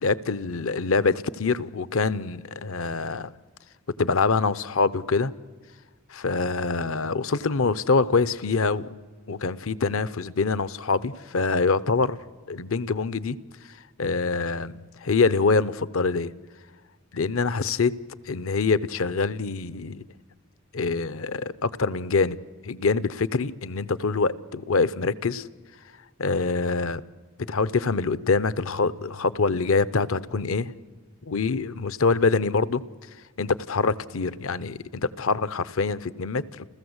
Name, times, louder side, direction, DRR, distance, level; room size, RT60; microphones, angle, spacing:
voice 1, 0.0-3.3 4.0-5.3 6.1-9.0 9.3-12.2 12.5-13.4 14.0-16.3 17.1-17.9 18.3-20.0 20.7-22.4 22.6-25.4 26.2-27.0 27.5-30.7 31.3-32.8 33.4-36.7, left 4 dB, 65° left, 0.7 m, -25 dB
30.0 x 14.5 x 8.0 m
head